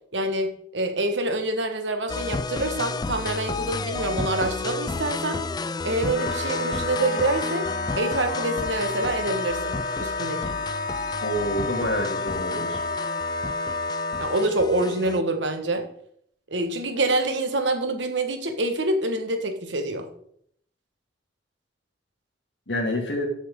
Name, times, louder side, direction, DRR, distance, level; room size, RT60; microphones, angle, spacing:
voice 1, 0.1-5.4 5.8-7.7 8.0-10.6 14.2-15.9 16.5-20.1, right 2 dB, 80° right, 6 dB, 1.5 m, -26 dB
sound 1, 2.1-15.2, left 3 dB, 20° left, 0.3 m, -32 dB
Wind instrument woodwind instrument, 6.1-14.5, left 3 dB, 50° left, 1.1 m, -30 dB
voice 2, 11.2-12.8 22.7-23.3, left 1 dB, 70° left, 2 dB, 2.5 m, -27 dB
13.5 x 7.7 x 3.7 m, 0.68 s
head